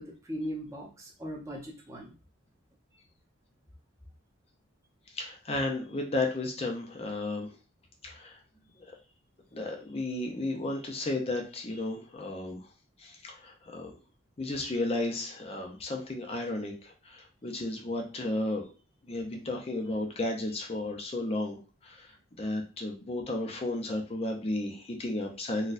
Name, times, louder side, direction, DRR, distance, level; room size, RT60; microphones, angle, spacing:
voice 1, 0.0-2.1 19.2-19.5, equal, 15° right, -2 dB, 0.7 m, -39 dB
voice 2, 5.1-7.5 8.0-8.4 8.8-8.9 9.5-12.7 13.0-13.9 14.4-18.7 19.0-25.7, left 2 dB, 30° left, 1 dB, 0.5 m, -33 dB
4.1 x 2.2 x 2.5 m, 0.34 s
head